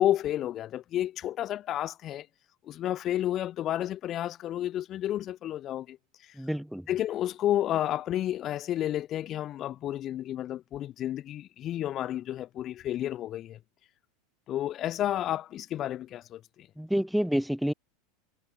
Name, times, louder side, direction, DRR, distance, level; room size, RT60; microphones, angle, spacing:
voice 1, 0.0-2.3 2.6-6.0 6.9-13.6 14.5-16.7, left 12 dB, 40° left, 0.8 m, -31 dB
voice 2, 6.3-6.9 16.8-17.7, equal, ahead, 0.7 m, -28 dB
supercardioid pair, 115°, 0 cm